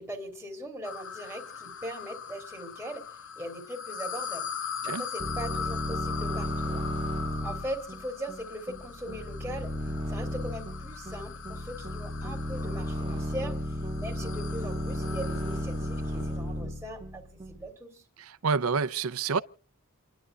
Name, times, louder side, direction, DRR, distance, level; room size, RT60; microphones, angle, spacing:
voice 1, 0.0-4.5 4.8-6.9 7.4-18.0, equal, 5° right, 3.0 m, -40 dB
sound 1, 0.8-16.5, left 7 dB, 60° left, 0.8 m, -40 dB
sound 2, 5.2-17.7, equal, 25° right, 1.5 m, -34 dB
voice 2, 18.2-19.4, right 5 dB, 70° right, 0.6 m, -28 dB
29.0 x 11.5 x 2.4 m
head